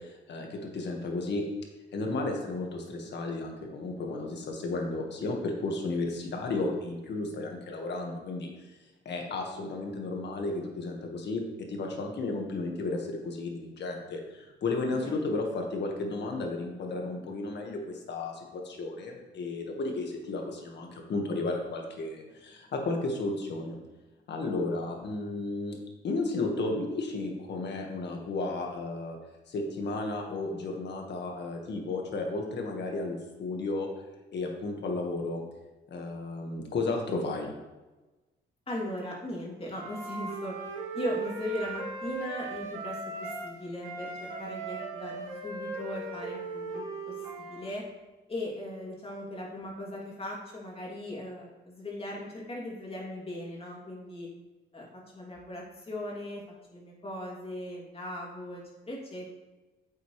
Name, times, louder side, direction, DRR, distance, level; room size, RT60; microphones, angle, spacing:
voice 1, 0.0-1.5 1.9-8.5 9.1-23.8 24.3-25.8 26.0-29.2 29.5-33.9 34.3-35.4 35.9-37.5, left 2 dB, 60° left, 2 dB, 1.8 m, -33 dB
voice 2, 38.7-40.6 40.9-47.8 48.3-54.3 54.7-54.9 55.1-56.4 56.7-59.3, left 1 dB, 30° left, -3 dB, 3.1 m, -38 dB
Wind instrument woodwind instrument, 39.7-43.5 43.8-47.7, right 4 dB, 85° right, 2.7 m, -38 dB
9.0 x 7.9 x 3.4 m, 1.1 s
cardioid pair, 90°, 20 cm